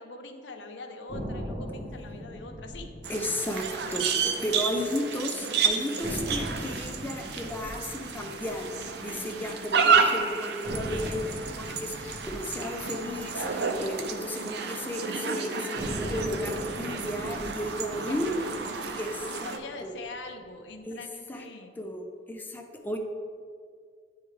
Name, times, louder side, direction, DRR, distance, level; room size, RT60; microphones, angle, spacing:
voice 1, 0.0-2.9 4.8-5.0 18.0-19.0 19.4-21.7, left 2 dB, 90° left, 5 dB, 0.6 m, -43 dB
sound 1, 1.1-5.2 5.5-5.6 6.0-10.1 10.6-15.0 15.8-20.1, equal, 45° right, 1.1 m, -40 dB
sound 2, 3.0-19.6, right 5 dB, 65° right, 0.5 m, -31 dB
voice 2, 3.1-8.7 9.0-18.3 19.0-19.5 19.8-19.9 20.8-21.0 21.3-21.5 21.8-23.0, left 1 dB, 10° left, 2 dB, 0.4 m, -34 dB
8.7 x 3.5 x 3.3 m, 2.1 s
head